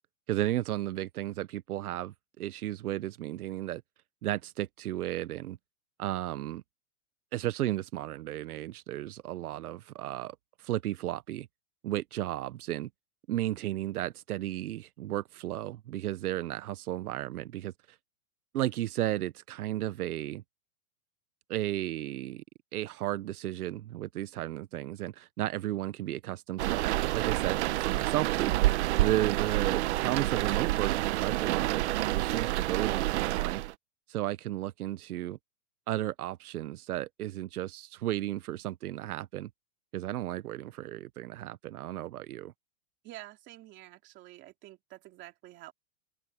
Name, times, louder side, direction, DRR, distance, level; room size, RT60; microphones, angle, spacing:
voice 1, 0.3-3.8 4.2-5.6 6.0-6.6 7.3-11.5 11.8-12.9 13.3-17.7 18.5-20.4 21.5-22.4 22.7-31.8 32.1-33.6 34.1-35.4 35.9-39.5 39.9-42.5, right 14 dB, 80° right, 1.0 m, -34 dB
sound 1, 26.6-33.7, right 16 dB, 50° right, 0.9 m, -28 dB
voice 2, 43.0-45.7, right 16 dB, 25° right, 2.9 m, -49 dB
open air
supercardioid pair, 165°, 43 cm